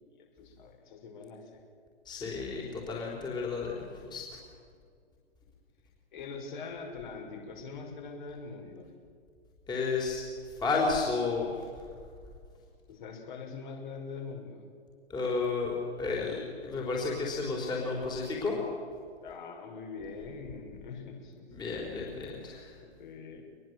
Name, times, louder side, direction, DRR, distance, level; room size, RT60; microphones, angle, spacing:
voice 1, 0.2-1.6 6.1-8.9 12.9-14.6 19.2-21.5 22.5-23.4, left 4 dB, 45° left, 1 dB, 6.1 m, -43 dB
voice 2, 2.1-4.2 9.7-10.2 10.6-11.5 15.1-18.6 21.5-22.7, left 4 dB, 10° left, -2 dB, 4.0 m, -32 dB
25.5 x 21.5 x 8.0 m, 2.1 s
figure-of-eight pair, 130°, 34 cm